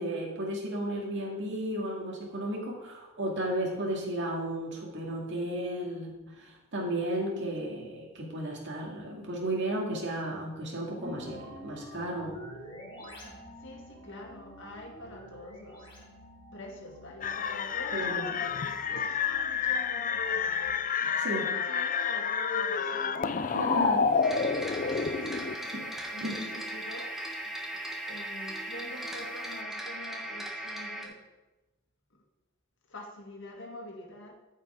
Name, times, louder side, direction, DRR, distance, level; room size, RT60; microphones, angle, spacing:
voice 1, 0.0-12.4 17.9-18.3 21.2-21.4 23.4-24.1 25.7-25.8 26.2-26.4, right 1 dB, 60° right, -2 dB, 2.2 m, -34 dB
sound 1, 11.0-20.7, right 1 dB, 25° left, 2.4 m, -49 dB
voice 2, 13.6-15.9 16.5-20.8 21.4-23.2 24.1-27.1 28.0-31.2 32.9-34.4, left 1 dB, 60° left, 1 dB, 1.9 m, -45 dB
sound 2, 17.2-25.5, left 6 dB, 40° left, 0.5 m, -29 dB
sound 3, 24.2-31.0, right 1 dB, ahead, 1.6 m, -38 dB
14.0 x 5.8 x 4.9 m, 1.1 s
head